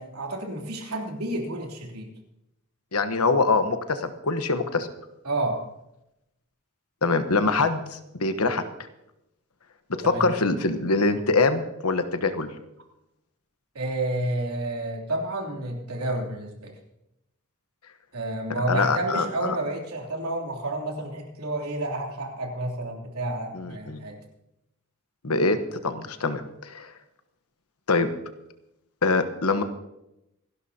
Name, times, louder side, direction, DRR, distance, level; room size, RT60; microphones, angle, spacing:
voice 1, 0.0-2.1 5.2-5.6 10.0-10.3 13.7-16.7 18.1-24.2, right 1 dB, 85° right, 0 dB, 3.3 m, -30 dB
voice 2, 2.9-4.9 7.0-8.6 9.9-12.5 18.7-19.6 23.5-24.0 25.2-25.6 25.8-26.9 27.9-28.1 29.0-29.6, left 3 dB, 85° left, 9 dB, 1.1 m, -24 dB
27.0 x 12.0 x 2.9 m, 0.88 s
head